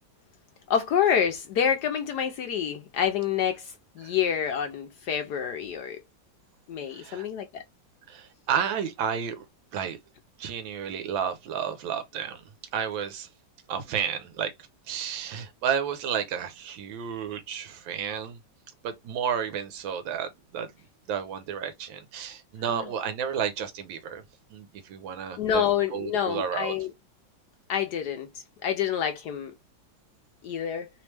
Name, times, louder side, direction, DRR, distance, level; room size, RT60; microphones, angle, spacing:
voice 1, 0.7-6.0 6.7-7.6 22.7-22.9 25.4-26.9 27.7-29.5 30.4-30.9, left 8 dB, 70° left, 1.0 m, -27 dB
voice 2, 6.9-7.3 8.1-9.5 9.7-10.0 10.4-12.4 12.7-13.3 13.7-14.5 14.9-18.4 18.8-20.7 21.1-24.2 24.5-25.7 25.9-26.7, right 8 dB, 85° right, 1.4 m, -31 dB
3.4 x 3.0 x 3.2 m
omnidirectional pair, 2.0 m